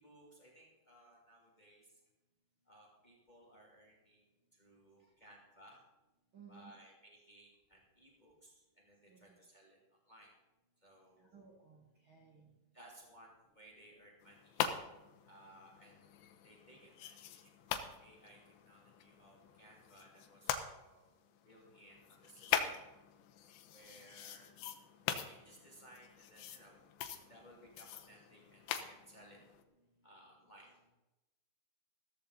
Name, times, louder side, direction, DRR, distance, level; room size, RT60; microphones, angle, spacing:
voice 1, 0.0-2.0 2.6-4.3 4.5-5.8 6.5-9.8 10.0-10.3 10.8-11.4 12.7-14.6 15.2-16.1 16.4-21.2 21.4-22.8 23.7-24.5 25.1-26.8 27.1-29.4 30.0-30.7, right 1 dB, 15° left, -2 dB, 1.6 m, -61 dB
voice 2, 6.3-6.8 9.1-9.3 11.2-12.5 23.9-24.0 24.3-24.4 26.0-26.1 29.3-29.4, right 6 dB, 85° right, -2 dB, 1.1 m, -60 dB
sound 1, 14.2-20.6 21.1-29.6, left 9 dB, 80° left, 3.1 m, -43 dB
15.0 x 14.0 x 4.1 m, 1.0 s
omnidirectional pair, 5.1 m